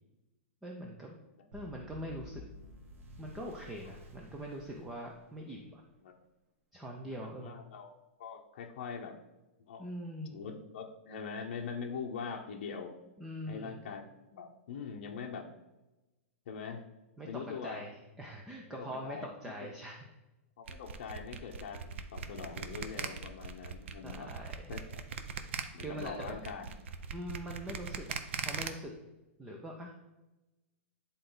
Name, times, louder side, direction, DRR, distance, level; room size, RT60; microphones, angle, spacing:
voice 1, 0.6-1.2 1.5-2.4 3.2-5.8 6.7-7.6 9.8-10.4 13.2-13.8 17.2-17.3 17.6-20.1 24.0-24.7 25.8-26.4 27.1-28.2 28.5-28.9 29.4-29.9, equal, 5° right, 0 dB, 0.4 m, -43 dB
sound 1, 1.5-5.6, equal, 80° right, 1.4 m, -52 dB
voice 2, 7.1-9.1 9.7-9.8 10.3-12.9 13.5-15.5 16.5-16.8 17.3-17.9 18.7-19.3 19.6-19.7 20.6-24.3 24.7-24.8 25.7-26.7, left 6 dB, 50° left, 1 dB, 0.8 m, -43 dB
sound 2, 20.7-28.7, right 6 dB, 65° right, 0.7 m, -40 dB
9.8 x 3.9 x 3.9 m, 1.0 s
supercardioid pair, 180°, 7 cm